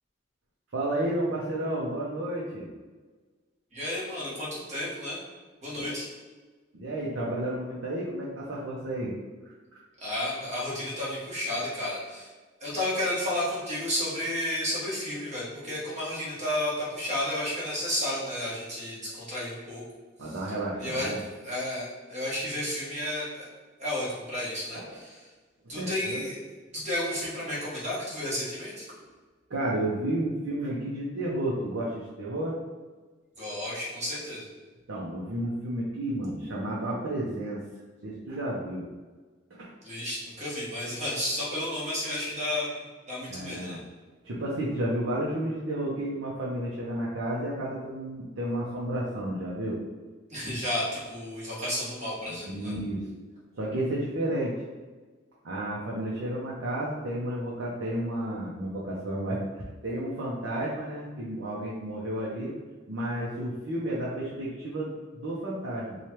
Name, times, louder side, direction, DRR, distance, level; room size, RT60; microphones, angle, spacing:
voice 1, 0.7-2.7 5.7-6.0 6.7-9.1 9.4-9.5 20.2-21.2 24.7-25.0 25.6-26.2 29.5-32.6 34.9-37.6 38.0-38.8 39.5-39.7 43.3-43.8 44.2-49.8 52.3-53.1 53.5-54.6 55.4-59.4 59.8-62.5 62.9-66.0, right 1 dB, 80° right, -5 dB, 0.7 m, -32 dB
voice 2, 3.7-5.2 5.6-6.1 10.0-12.3 12.6-19.8 20.8-21.1 21.4-23.5 23.8-25.2 25.7-26.3 26.7-28.8 33.4-34.5 39.8-42.7 43.1-43.8 50.3-52.7, left 1 dB, 35° right, -7 dB, 1.3 m, -32 dB
3.2 x 2.4 x 4.3 m, 1.3 s
head